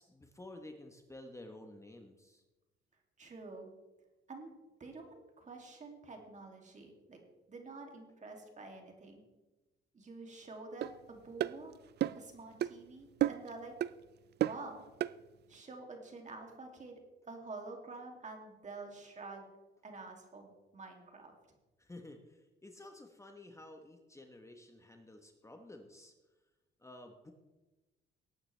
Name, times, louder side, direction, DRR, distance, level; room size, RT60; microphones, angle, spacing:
voice 1, 0.0-2.4 21.8-26.1 26.8-27.3, left 1 dB, 15° left, 4 dB, 1.2 m, -52 dB
voice 2, 3.2-3.7 4.3-4.5 4.8-7.2 7.5-9.2 9.9-11.8 12.1-13.7 14.4-14.9 15.5-19.5 19.8-21.3, right 3 dB, 40° right, 2 dB, 2.6 m, -48 dB
sound 1, 10.8-10.9 11.4-11.6 12.0-12.3 12.6-12.7 13.2-13.5 13.8-13.9 14.4-14.6 15.0-15.1, right 12 dB, 55° right, 0.4 m, -32 dB
18.5 x 9.1 x 3.4 m, 1.1 s
cardioid pair, 90°, 20 cm